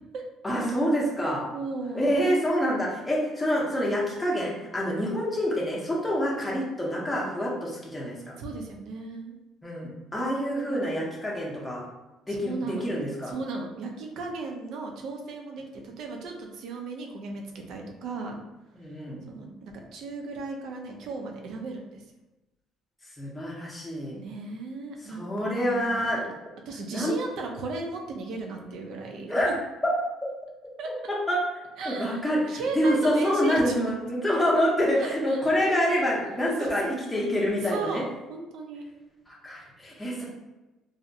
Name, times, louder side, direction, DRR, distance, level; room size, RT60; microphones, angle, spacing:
voice 1, 0.4-1.4 1.9-8.4 9.6-11.8 12.3-13.3 18.8-19.2 23.2-24.1 25.1-26.3 26.9-27.1 29.3-29.5 30.0-30.3 31.1-31.4 31.9-38.0 39.4-40.3, equal, 10° left, -4 dB, 0.6 m, -27 dB
voice 2, 1.5-2.2 8.4-9.4 12.3-12.9 13.2-18.4 19.3-22.0 24.1-26.2 26.7-29.5 30.8-30.9 31.8-32.2 32.5-33.9 35.0-35.4 35.7-35.8 36.5-36.7 37.6-38.8, right 3 dB, 65° right, 2 dB, 0.4 m, -36 dB
2.6 x 2.0 x 2.6 m, 1.0 s
cardioid pair, 115°, 0 cm